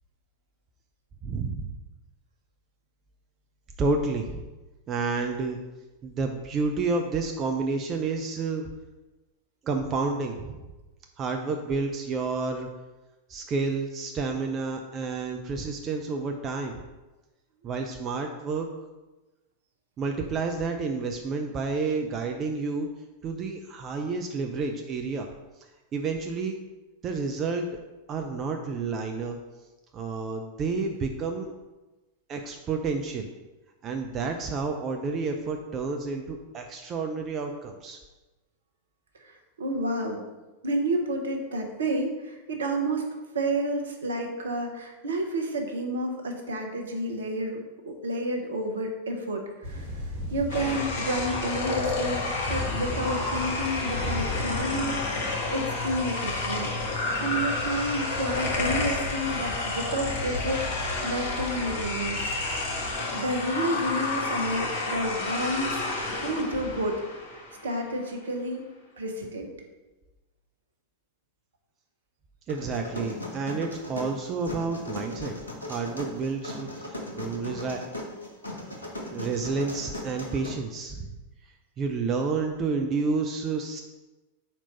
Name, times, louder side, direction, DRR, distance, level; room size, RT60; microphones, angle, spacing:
voice 1, 1.2-1.8 3.8-4.4 4.9-5.6 6.0-8.7 9.6-10.6 11.2-12.7 13.3-16.8 17.6-18.7 20.0-22.9 23.2-25.3 25.9-26.6 27.0-27.8 28.1-29.4 29.9-31.5 32.3-33.3 33.8-38.0 72.5-75.4 75.7-77.8 79.1-81.1 81.8-83.8, right 4 dB, 30° right, 4 dB, 0.5 m, -30 dB
voice 2, 39.2-40.2 40.6-43.0 43.3-49.9 50.3-56.7 57.2-62.3 63.1-65.8 66.1-67.0 67.3-68.6 69.0-69.5, right 1 dB, 70° right, 3 dB, 0.9 m, -30 dB
sound 1, 49.6-62.9, equal, 50° right, 1.4 m, -37 dB
sound 2, 50.5-67.8, left 3 dB, 55° left, 1.1 m, -30 dB
sound 3, 72.5-80.5, left 1 dB, 80° left, 1.0 m, -38 dB
4.4 x 4.3 x 5.3 m, 1.1 s
figure-of-eight pair, 90°, 0 cm